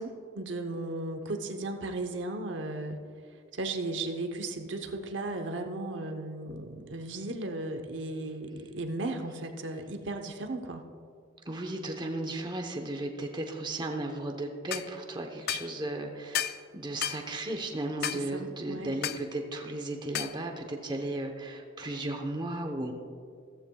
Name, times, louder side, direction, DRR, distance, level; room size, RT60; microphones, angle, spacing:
voice 1, 0.0-3.0 3.5-10.8 18.1-18.9, right 2 dB, 70° right, 5 dB, 0.9 m, -35 dB
voice 2, 11.5-22.9, right 1 dB, 25° right, 3 dB, 0.9 m, -35 dB
sound 1, 14.7-14.9 15.5-15.7 16.3-16.6 17.0-17.2 18.0-18.2 19.0-19.2 20.1-20.4, left 10 dB, 55° left, 0.3 m, -32 dB
15.5 x 14.5 x 2.3 m, 2.2 s
head